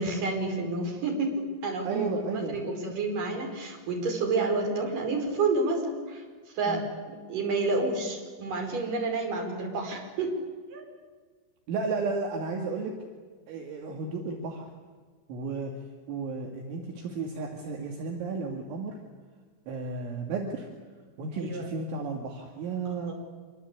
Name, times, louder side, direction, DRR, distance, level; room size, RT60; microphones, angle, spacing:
voice 1, 0.0-6.2 6.5-6.8 7.3-10.3 10.7-10.8 21.3-21.7 22.9-23.1, right 3 dB, 40° right, 2 dB, 6.1 m, -29 dB
voice 2, 1.8-2.6 6.7-6.8 11.7-13.0 13.5-14.7 15.3-15.7 16.1-19.0 19.7-20.7 21.2-23.1, right 4 dB, 70° right, 2 dB, 4.3 m, -33 dB
26.0 x 23.5 x 8.4 m, 1.5 s
omnidirectional pair, 5.8 m